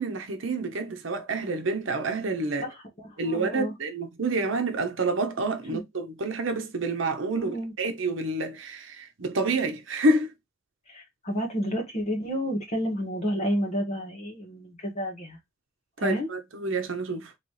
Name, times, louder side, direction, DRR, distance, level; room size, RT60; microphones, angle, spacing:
voice 1, 0.0-2.7 3.2-10.3 16.0-17.3, right 2 dB, 70° right, 0.8 m, -28 dB
voice 2, 2.6-3.7 5.7-5.8 7.4-7.7 10.9-15.4 16.0-16.3, equal, 35° left, 1.6 m, -30 dB
4.1 x 3.0 x 3.2 m
head